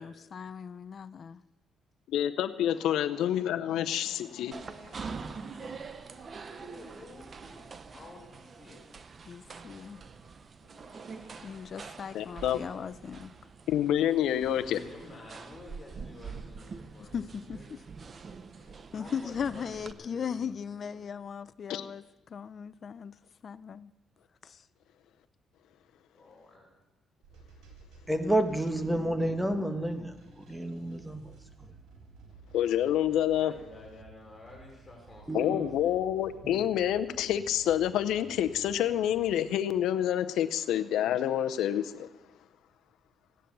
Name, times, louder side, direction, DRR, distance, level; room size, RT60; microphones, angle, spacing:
voice 1, 0.0-1.4 9.3-10.0 11.4-13.3 17.1-17.8 18.9-23.1 23.4-23.9 24.4-24.6, left 7 dB, 50° left, 0.6 m, -38 dB
voice 2, 2.1-5.0 12.1-12.6 13.7-14.8 21.7-21.8 32.5-33.5 35.3-42.1, left 11 dB, 85° left, 0.7 m, -28 dB
sound 1, 4.5-19.9, right 5 dB, 40° right, 0.8 m, -45 dB
voice 3, 6.5-8.8 14.5-17.7 18.9-21.1 26.1-26.7 33.4-36.0, left 2 dB, 20° left, 5.0 m, -51 dB
sound 2, 27.2-39.5, right 4 dB, 85° right, 4.0 m, -54 dB
voice 4, 28.1-31.7 35.3-35.6 36.4-36.6, right 1 dB, ahead, 1.5 m, -30 dB
16.0 x 10.0 x 6.9 m
cardioid pair, 90°, 0 cm